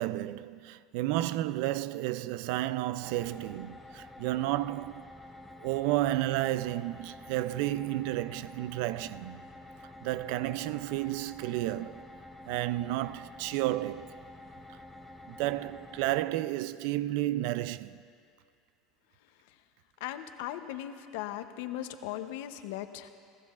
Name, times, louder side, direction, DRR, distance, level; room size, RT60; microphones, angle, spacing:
voice 1, 0.0-5.0 5.6-9.4 10.0-12.0 12.5-14.1 15.3-18.0, right 15 dB, 70° right, 0.3 m, -32 dB
sound 1, 3.0-16.2, left 1 dB, ahead, 1.0 m, -49 dB
voice 2, 20.0-23.1, left 12 dB, 75° left, 0.7 m, -38 dB
28.0 x 14.5 x 2.4 m
supercardioid pair, 105°, 0 cm